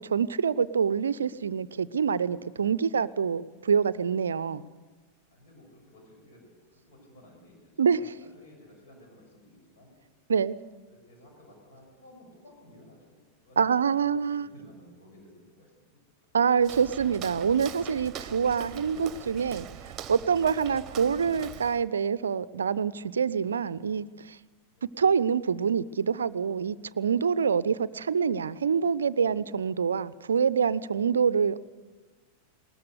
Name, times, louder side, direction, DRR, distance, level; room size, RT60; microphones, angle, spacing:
voice 1, 0.1-4.6 7.8-8.0 10.3-10.6 13.6-14.5 16.3-19.7 20.1-24.4 25.0-31.6, right 6 dB, 70° right, 19 dB, 0.5 m, -26 dB
voice 2, 5.3-9.9 10.9-16.3 24.7-24.9, left 1 dB, 55° left, 1 dB, 6.8 m, -55 dB
Walk footsteps, 16.6-21.9, right 10 dB, 30° right, 1.0 m, -43 dB
20.5 x 19.5 x 6.7 m, 1.3 s
figure-of-eight pair, 90°, 0 cm